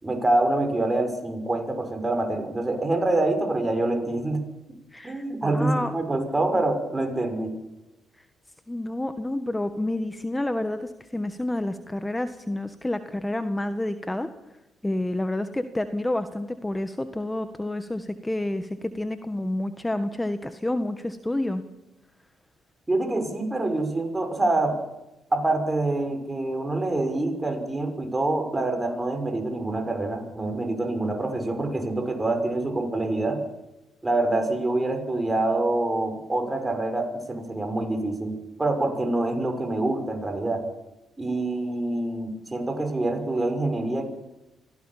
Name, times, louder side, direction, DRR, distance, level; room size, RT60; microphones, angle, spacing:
voice 1, 0.0-4.4 5.0-7.5 22.9-24.8 25.3-33.4 34.0-40.6 41.2-44.0, right 2 dB, 20° right, 6 dB, 6.0 m, -26 dB
voice 2, 4.9-5.9 8.7-14.3 14.8-21.6, left 1 dB, 15° left, 9 dB, 1.6 m, -29 dB
25.5 x 17.0 x 7.4 m, 0.99 s
hypercardioid pair, 50°, 0 cm